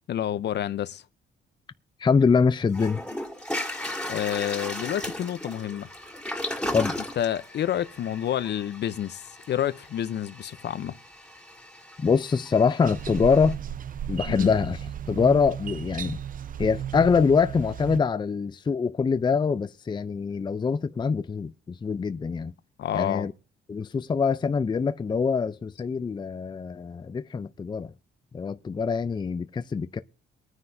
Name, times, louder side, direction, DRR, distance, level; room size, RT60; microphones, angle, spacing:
voice 1, 0.1-1.0 4.1-5.9 7.2-11.0 14.3-14.5 22.8-23.3, left 10 dB, 60° left, 0.7 m, -29 dB
voice 2, 2.0-3.0 6.7-7.0 12.0-13.6 14.1-14.8 15.1-16.2 16.6-22.5 22.9-23.3 23.7-27.9 28.3-30.0, left 5 dB, 25° left, 0.5 m, -24 dB
Toilet flush, 2.2-2.3 2.7-13.5, left 1 dB, 5° left, 2.3 m, -36 dB
sound 1, 12.8-18.0, right 10 dB, 45° right, 0.5 m, -35 dB
22.5 x 9.5 x 2.7 m
cardioid pair, 90°, 20 cm